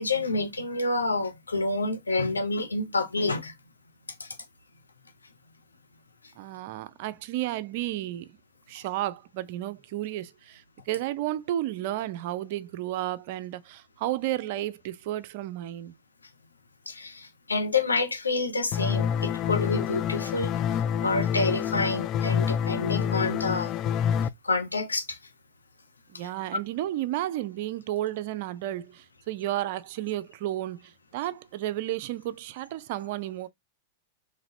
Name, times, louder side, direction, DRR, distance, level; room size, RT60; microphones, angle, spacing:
voice 1, 0.0-3.5 4.2-4.3 16.9-20.5 21.0-23.7 24.4-25.2, left 3 dB, 90° left, 0.9 m, -28 dB
voice 2, 6.4-8.3 8.7-15.9 26.1-33.5, right 14 dB, 55° right, 0.5 m, -32 dB
sound 1, 18.7-24.3, left 8 dB, 40° left, 0.3 m, -27 dB
4.0 x 3.3 x 2.7 m
figure-of-eight pair, 100°, 0 cm